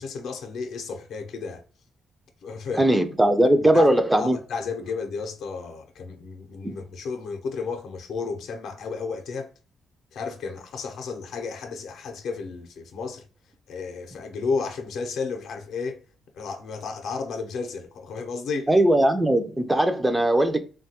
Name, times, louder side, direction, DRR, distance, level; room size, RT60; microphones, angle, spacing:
voice 1, 0.0-1.6 2.4-2.9 3.7-3.9 4.2-9.5 10.1-13.2 13.7-16.0 16.3-18.7, left 4 dB, 75° left, 0.6 m, -32 dB
voice 2, 2.8-4.4 6.6-6.8 18.7-20.6, right 1 dB, 10° right, 0.4 m, -19 dB
3.1 x 2.2 x 2.7 m
cardioid pair, 115°, 0 cm